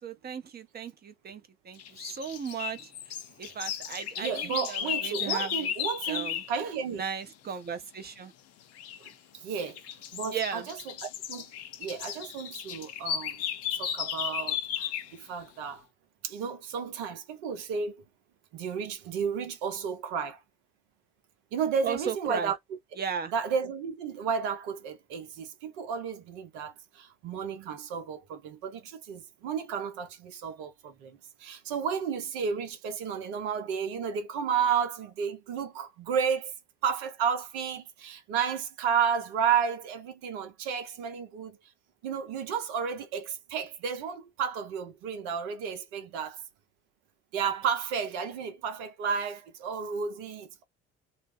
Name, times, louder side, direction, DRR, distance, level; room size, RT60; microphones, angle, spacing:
voice 1, 0.0-2.9 3.4-5.7 6.1-6.4 6.9-8.3 10.3-10.7 21.8-22.5 23.0-23.3, right 7 dB, 30° right, 0.7 m, -36 dB
sound 1, 1.8-6.5 8.8-9.1 9.6-15.2, left 9 dB, 45° left, 0.6 m, -35 dB
voice 2, 4.2-7.0 9.0-9.1 9.4-9.8 10.1-10.9 11.3-11.5 11.8-13.4 13.7-15.9 16.2-18.0 18.5-20.4 21.5-22.6 23.3-36.5 36.8-41.6 42.0-46.4 47.3-50.6, right 7 dB, 65° right, 0.8 m, -32 dB
2.2 x 2.0 x 3.5 m
figure-of-eight pair, 55°, 34 cm